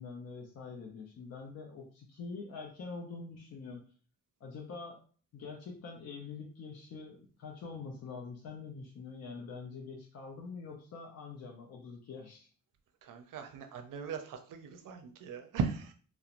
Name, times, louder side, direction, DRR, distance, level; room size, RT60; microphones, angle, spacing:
voice 1, 0.0-3.8 4.4-5.0 5.3-12.5, left 4 dB, 50° left, -1 dB, 0.5 m, -45 dB
voice 2, 13.0-15.9, right 6 dB, 75° right, 6 dB, 0.5 m, -38 dB
2.9 x 2.0 x 2.4 m, 0.42 s
wide cardioid pair, 170°, 33 cm